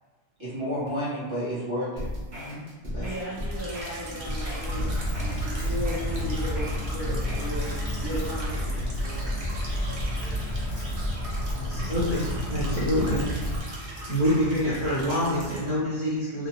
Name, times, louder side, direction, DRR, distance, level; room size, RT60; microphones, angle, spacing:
voice 1, 0.4-2.6 2.9-3.1, equal, 25° right, -12 dB, 0.9 m, -31 dB
sound 1, 2.0-7.6, left 1 dB, 65° right, 1.1 m, -35 dB
voice 2, 3.0-4.9 5.2-9.3, equal, 15° left, -10 dB, 0.8 m, -36 dB
sound 2, 3.3-15.7, right 1 dB, 45° right, 0.4 m, -39 dB
Walk footsteps, 4.6-13.6, left 1 dB, 80° left, 1.0 m, -30 dB
voice 3, 11.5-12.2 12.5-13.2 14.1-16.5, equal, 45° left, -10 dB, 0.6 m, -26 dB
2.7 x 2.1 x 2.9 m, 1.3 s
omnidirectional pair, 1.2 m